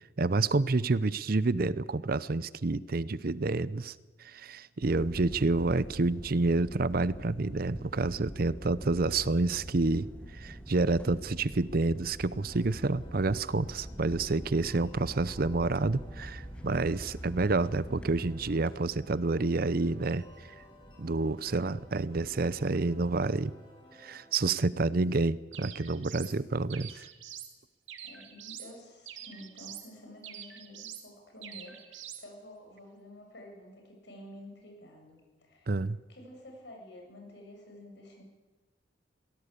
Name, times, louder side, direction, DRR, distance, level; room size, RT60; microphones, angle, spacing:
voice 1, 0.2-3.9 4.2-10.1 10.3-20.2 21.0-23.5 24.0-26.9 35.7-36.0, right 3 dB, 50° right, 18 dB, 0.6 m, -29 dB
voice 2, 4.8-5.4 24.7-25.1 26.2-26.4 28.0-35.8 36.1-38.2, left 1 dB, 65° left, 1 dB, 7.7 m, -50 dB
sound 1, 4.8-23.3, equal, 5° left, 2.4 m, -45 dB
sound 2, 12.3-24.3, equal, 25° left, 6.1 m, -57 dB
sound 3, 25.5-26.4 26.7-27.5 27.9-28.7 29.1-29.9 30.2-31.1 31.4-32.2, right 10 dB, 85° right, 2.5 m, -45 dB
23.0 x 18.0 x 8.4 m, 1.2 s
head